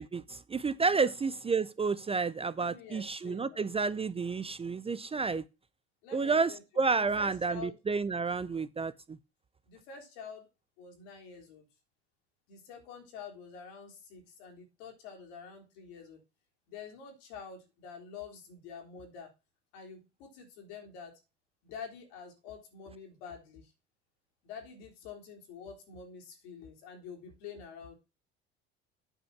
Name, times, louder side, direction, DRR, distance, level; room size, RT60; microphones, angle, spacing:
voice 1, 0.0-5.4 6.1-9.2, right 4 dB, 20° right, 0.5 m, -30 dB
voice 2, 2.6-3.6 6.0-6.6 7.0-7.8 9.7-10.5 10.8-11.7 12.5-16.2 16.7-19.3 19.7-21.2 21.6-23.7 24.4-27.9, left 6 dB, 70° left, 3.8 m, -47 dB
8.9 x 5.1 x 5.8 m
hypercardioid pair, 75°, 32 cm